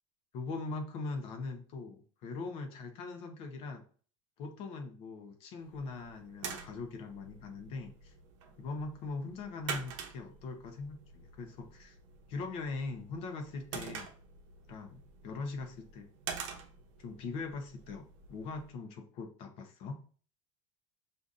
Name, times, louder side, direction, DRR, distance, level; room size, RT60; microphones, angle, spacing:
voice 1, 0.3-3.8 4.4-8.1 8.6-12.0 12.3-14.1 14.7-16.1 17.0-20.0, left 3 dB, 35° left, 5 dB, 0.7 m, -41 dB
sound 1, 5.6-18.7, right 6 dB, 70° right, 0.7 m, -47 dB
6.7 x 2.6 x 2.5 m, 0.42 s
supercardioid pair, 175°, 17 cm